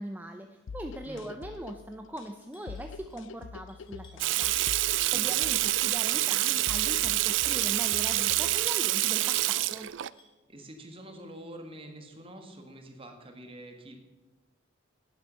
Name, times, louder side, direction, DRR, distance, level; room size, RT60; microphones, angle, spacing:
voice 1, 0.0-9.9, right 1 dB, 10° right, 5 dB, 0.5 m, -41 dB
sound 1, 0.7-8.7, left 5 dB, 80° left, 0.4 m, -45 dB
sound 2, 2.5-2.9 3.1-3.4 3.7-4.7 5.0-5.2 5.5-8.5 9.0-10.3, left 3 dB, 25° left, 2.1 m, -56 dB
Water tap faucet / Sink (filling or washing), 4.2-10.1, right 17 dB, 75° right, 0.3 m, -27 dB
voice 2, 5.0-5.3 10.5-14.0, right 1 dB, 30° right, 5 dB, 1.6 m, -46 dB
11.5 x 9.2 x 5.6 m, 1.1 s
head